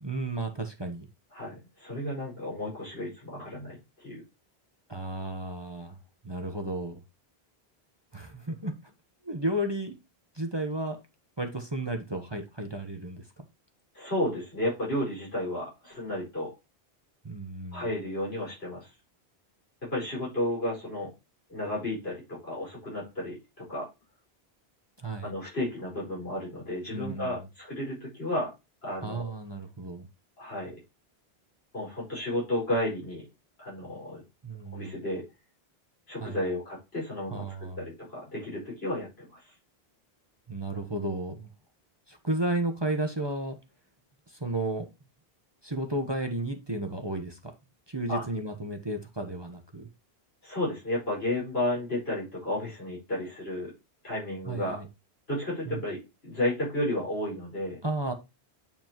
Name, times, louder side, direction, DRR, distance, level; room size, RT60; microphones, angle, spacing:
voice 1, 0.0-1.1 4.9-6.0 6.2-7.0 8.1-8.9 9.2-9.9 10.3-11.0 11.4-13.5 17.2-17.9 25.0-25.3 26.9-27.5 29.0-30.1 34.4-34.9 36.2-36.4 37.3-37.8 40.5-41.5 42.1-43.6 44.3-44.9 45.6-47.5 47.9-49.9 54.4-54.9 55.6-55.8 57.8-58.1, right 1 dB, 25° right, 4 dB, 1.1 m, -33 dB
voice 2, 1.3-4.2 13.9-16.5 17.7-18.9 19.8-21.1 21.5-23.9 25.2-28.5 28.8-29.3 30.4-30.8 31.7-33.3 33.6-34.2 34.7-35.2 36.1-37.4 37.8-39.4 48.1-48.2 50.4-53.7 54.0-54.8 55.3-57.8, left 1 dB, 70° left, -5 dB, 5.6 m, -32 dB
9.0 x 5.1 x 3.0 m, 0.24 s
omnidirectional pair, 1.1 m